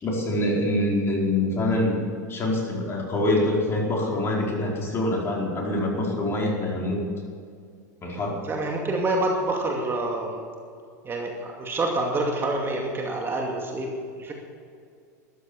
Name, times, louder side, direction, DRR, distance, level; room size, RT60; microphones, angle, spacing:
voice 1, 0.0-2.0 2.3-7.0 8.0-8.4, left 1 dB, 25° left, -2 dB, 4.8 m, -25 dB
voice 2, 8.4-10.4 11.0-14.3, right 2 dB, 25° right, 0 dB, 2.4 m, -27 dB
13.5 x 12.0 x 7.2 m, 2.3 s
hypercardioid pair, 110°, 10 cm